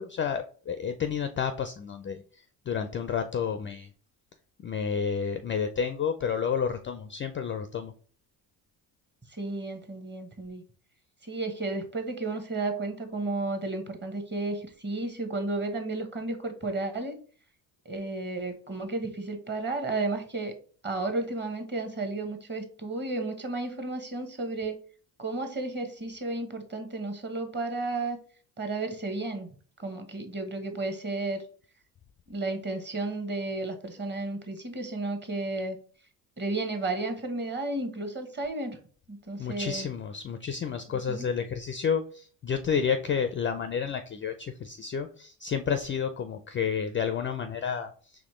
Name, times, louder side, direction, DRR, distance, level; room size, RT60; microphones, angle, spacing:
voice 1, 0.0-2.2 2.7-3.9 4.6-7.9 39.4-47.9, left 7 dB, 30° left, 8 dB, 0.3 m, -30 dB
voice 2, 9.3-10.6 11.2-17.2 17.8-20.5 20.8-24.8 25.2-28.2 28.6-29.5 29.8-31.4 32.3-35.8 36.4-38.8 39.1-39.9 40.9-41.3, right 2 dB, 25° right, 6 dB, 1.0 m, -33 dB
4.2 x 3.0 x 3.0 m, 0.42 s
supercardioid pair, 75°, 45 cm